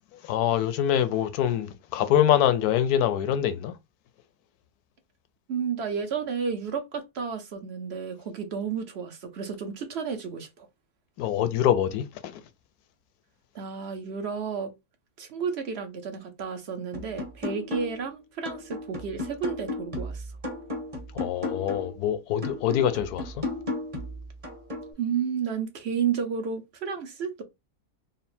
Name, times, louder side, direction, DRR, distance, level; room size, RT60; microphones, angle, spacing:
voice 1, 0.2-3.7 11.2-12.4 21.1-23.4, left 10 dB, 80° left, 1.1 m, -25 dB
voice 2, 5.5-10.7 13.5-14.7 15.2-20.3 25.0-27.4, right 6 dB, 50° right, 0.9 m, -32 dB
sound 1, 16.9-18.1 18.5-22.0 22.4-24.9, left 2 dB, 25° right, 1.2 m, -35 dB
4.0 x 2.1 x 4.2 m
omnidirectional pair, 1.6 m